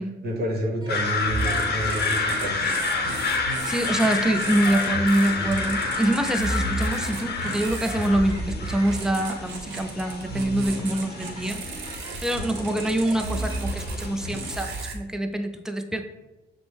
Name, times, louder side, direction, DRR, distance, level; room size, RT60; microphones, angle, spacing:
voice 1, 0.2-2.6, right 1 dB, 50° right, 0 dB, 1.2 m, -29 dB
sound 1, 0.8-13.6, right 1 dB, 20° right, 0.8 m, -44 dB
sound 2, 0.9-14.8, left 4 dB, 55° left, 0.7 m, -30 dB
sound 3, 1.2-14.9, right 2 dB, 75° right, 0.8 m, -33 dB
voice 2, 3.7-11.6 12.2-16.0, right 1 dB, 5° right, 6 dB, 0.4 m, -25 dB
5.9 x 2.0 x 3.4 m, 1.1 s
cardioid pair, 90°, 20 cm